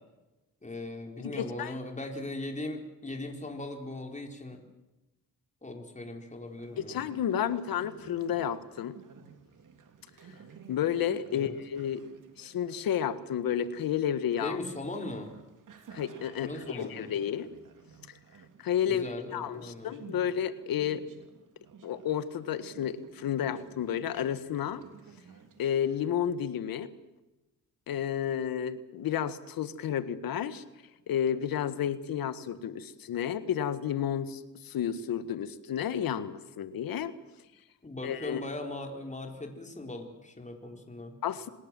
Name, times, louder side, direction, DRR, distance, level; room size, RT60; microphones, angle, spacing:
voice 1, 0.6-4.6 5.6-7.0 11.3-11.6 14.4-15.3 16.4-17.1 18.9-19.9 37.8-41.1, left 2 dB, 20° left, 3 dB, 4.3 m, -39 dB
voice 2, 1.2-1.7 6.8-9.0 10.7-12.0 12.4-14.6 15.9-17.5 18.6-21.0 21.8-24.8 25.6-26.9 27.9-30.6 31.1-37.1 38.0-38.4 41.2-41.5, left 9 dB, 90° left, 13 dB, 1.6 m, -31 dB
Conversation, 6.5-26.2, right 6 dB, 65° right, 3.4 m, -54 dB
27.0 x 19.5 x 7.6 m, 1.0 s
cardioid pair, 90°, 34 cm